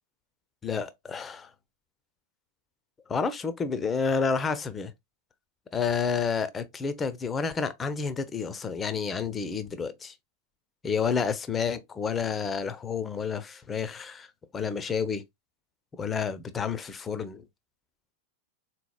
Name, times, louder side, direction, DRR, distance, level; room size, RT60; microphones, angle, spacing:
voice 1, 0.6-1.5 3.1-4.9 5.7-10.1 10.8-14.3 14.5-15.2 16.0-17.4, left 5 dB, 20° left, 0.4 m, -30 dB
3.8 x 2.9 x 2.2 m
figure-of-eight pair, 90°, 0 cm